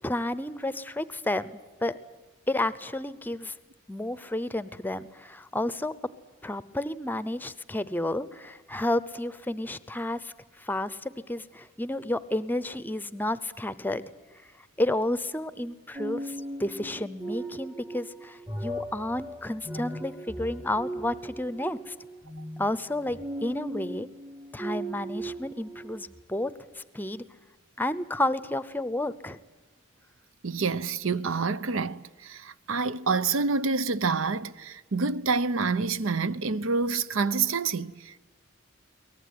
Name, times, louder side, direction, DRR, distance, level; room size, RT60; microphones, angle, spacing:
voice 1, 0.0-2.0 2.5-3.6 3.9-5.9 6.4-14.1 14.6-21.9 22.6-24.1 24.5-27.2 27.8-29.4, left 1 dB, 10° left, 0.7 m, -31 dB
sound 1, 15.9-26.2, right 1 dB, 15° right, 0.9 m, -38 dB
voice 2, 30.4-38.2, right 4 dB, 80° right, 0.7 m, -27 dB
23.0 x 19.0 x 9.6 m
head